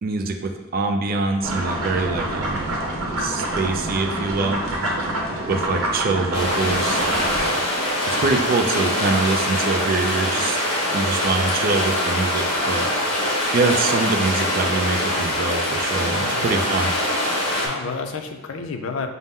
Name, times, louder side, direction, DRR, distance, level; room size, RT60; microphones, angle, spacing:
voice 1, 0.0-2.7 3.2-4.6 5.5-7.0 8.1-10.6 10.9-12.9 13.5-16.9, right 3 dB, 40° right, 5 dB, 0.3 m, -24 dB
sound 1, 1.4-7.5, right 1 dB, 75° right, 0.7 m, -26 dB
sound 2, 6.3-17.7, left 1 dB, 30° left, 0.9 m, -23 dB
voice 2, 16.2-16.7 17.6-19.1, left 4 dB, 65° left, 5 dB, 0.4 m, -31 dB
5.4 x 2.0 x 3.6 m, 1.1 s
head